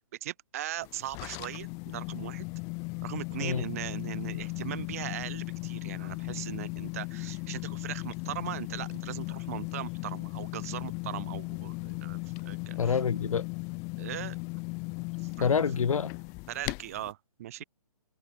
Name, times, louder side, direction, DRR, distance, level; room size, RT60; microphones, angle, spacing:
voice 1, 0.2-2.5 3.0-13.0 14.0-14.4 15.2-15.5 16.5-17.6, right 13 dB, 25° right, 1.4 m, -39 dB
sound 1, 0.8-17.1, left 33 dB, 15° left, 1.7 m, -37 dB
voice 2, 12.8-13.5 15.4-16.1, left 6 dB, 65° left, 1.7 m, -27 dB
hypercardioid pair, 170°, 19 cm